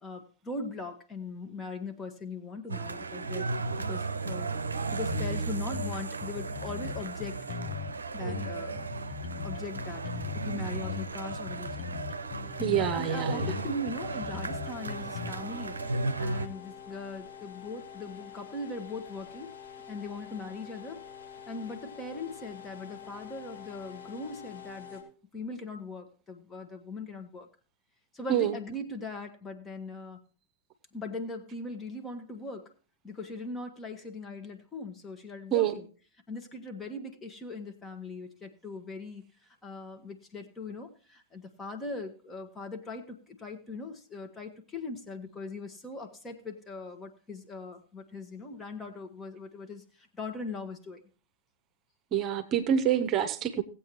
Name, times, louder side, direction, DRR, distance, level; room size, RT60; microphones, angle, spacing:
voice 1, 0.0-4.5 4.9-7.4 8.1-8.9 9.4-11.9 12.8-19.5 19.9-21.0 21.5-25.1 25.3-27.5 28.1-30.2 30.9-32.7 33.0-35.9 36.3-39.3 39.6-51.0, left 2 dB, 20° left, 5 dB, 1.4 m, -40 dB
sound 1, 2.7-16.5, right 3 dB, 75° right, 0.6 m, -35 dB
sound 2, 5.1-5.4 5.7-7.9 8.3-10.5 10.8-13.0 13.4-15.3, left 7 dB, 45° left, 1.2 m, -38 dB
sound 3, 12.0-25.0, left 7 dB, 65° left, 5.6 m, -48 dB
voice 2, 12.6-13.5 28.3-28.6 35.5-35.8 52.1-53.6, right 9 dB, 35° right, 7 dB, 0.9 m, -27 dB
18.0 x 8.2 x 3.1 m, 0.39 s
figure-of-eight pair, 90°, 0 cm